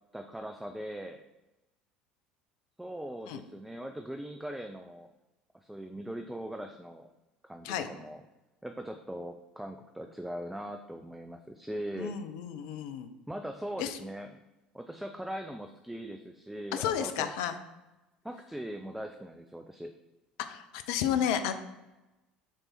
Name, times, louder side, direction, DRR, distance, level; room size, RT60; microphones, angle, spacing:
voice 1, 0.1-1.2 2.8-5.1 5.6-7.1 7.4-8.2 8.6-12.1 13.3-14.4 14.7-17.3 18.2-19.9, equal, 5° right, 5 dB, 0.4 m, -40 dB
voice 2, 12.0-13.1 13.8-14.0 16.7-17.6 20.5-21.5, left 9 dB, 60° left, 8 dB, 0.5 m, -32 dB
7.1 x 3.4 x 4.1 m, 1.0 s
figure-of-eight pair, 65°, 4 cm